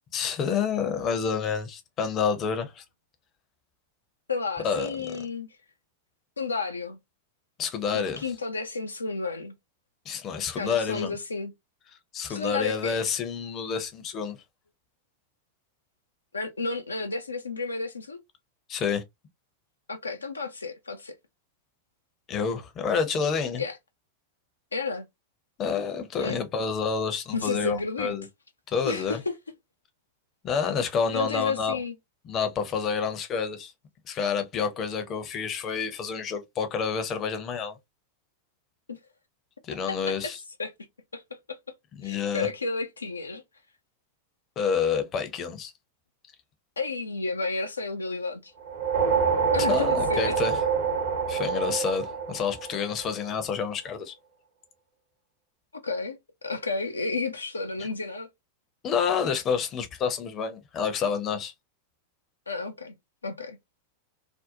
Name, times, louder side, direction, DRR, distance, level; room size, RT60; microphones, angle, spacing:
voice 1, 0.1-2.8 4.6-4.9 7.6-8.2 10.1-11.1 12.1-14.4 18.7-19.0 22.3-23.6 25.6-28.2 28.7-29.2 30.4-31.8 32.3-33.7 34.1-37.8 39.6-40.4 42.0-42.5 44.6-45.7 49.6-50.6 51.3-54.2 58.8-61.5, left 6 dB, 30° left, 0.6 m, -28 dB
voice 2, 4.3-5.5 6.4-7.0 7.9-9.5 10.6-11.5 12.3-13.0 16.3-18.2 19.9-21.2 23.6-23.8 24.7-25.1 26.2-26.4 27.3-28.1 28.8-29.3 31.1-31.9 38.9-39.0 39.9-40.0 40.2-40.3 40.6-40.7 41.1-41.6 42.0-43.4 46.8-48.5 49.5-50.4 55.8-56.2 56.4-58.3 62.5-62.9 63.2-63.6, left 4 dB, 75° left, 0.3 m, -32 dB
sound 1, 48.6-53.2, right 5 dB, 55° right, 0.8 m, -26 dB
2.5 x 2.1 x 2.6 m
figure-of-eight pair, 90°, 0 cm